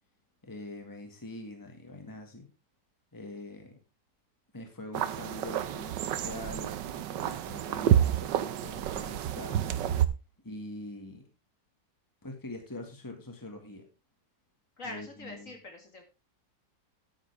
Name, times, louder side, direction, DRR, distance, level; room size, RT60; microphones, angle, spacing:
voice 1, 0.4-2.5 3.1-3.8 4.5-9.6 10.4-11.2 12.2-13.9 14.8-15.5, left 2 dB, 10° left, 4 dB, 1.9 m, -44 dB
sound 1, 4.9-10.1, right 10 dB, 90° right, 1.4 m, -29 dB
voice 2, 14.8-16.0, left 2 dB, 45° left, 3 dB, 2.6 m, -43 dB
11.0 x 9.2 x 3.5 m, 0.29 s
omnidirectional pair, 1.9 m